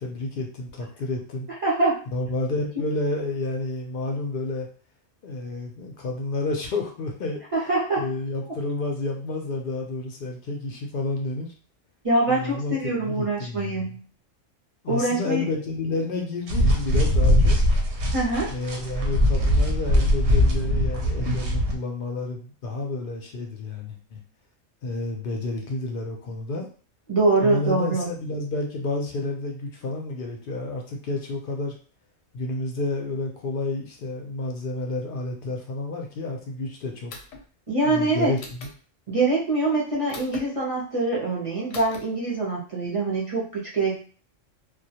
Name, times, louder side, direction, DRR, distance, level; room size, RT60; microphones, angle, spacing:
voice 1, 0.0-1.5 2.1-4.7 5.2-7.4 8.0-11.5 12.3-14.0 14.8-17.6 18.5-24.2 24.8-26.7 27.3-31.7 32.3-37.1 37.8-38.7, left 2 dB, 60° left, 1 dB, 0.5 m, -30 dB
voice 2, 1.6-2.0 7.5-8.0 12.0-14.0 14.9-15.5 18.1-18.5 27.1-28.1 37.7-38.3 39.1-44.0, right 2 dB, 40° right, -5 dB, 0.5 m, -24 dB
sound 1, 16.5-21.8, equal, 70° right, 0.8 m, -21 dB
sound 2, 37.1-37.4 38.4-38.7 40.1-40.4 41.7-42.0, left 3 dB, 90° left, 1.0 m, -40 dB
2.2 x 2.1 x 2.7 m, 0.41 s
omnidirectional pair, 1.3 m